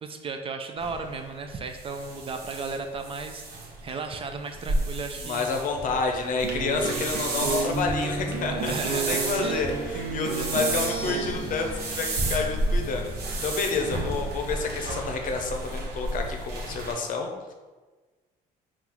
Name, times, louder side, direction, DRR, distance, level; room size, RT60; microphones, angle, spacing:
voice 1, 0.0-5.5 6.9-7.2 8.5-9.7 10.2-10.8, right 4 dB, 35° right, 5 dB, 0.4 m, -35 dB
sound 1, 0.8-16.9, right 2 dB, 70° right, 1.0 m, -32 dB
voice 2, 5.2-13.1 13.4-17.5, left 4 dB, 50° left, 3 dB, 0.7 m, -29 dB
sound 2, 6.4-11.5, right 5 dB, 85° right, 0.6 m, -31 dB
sound 3, 10.5-14.9, equal, 15° left, 1.4 m, -43 dB
3.8 x 2.4 x 4.4 m, 1.3 s
cardioid pair, 110°, 17 cm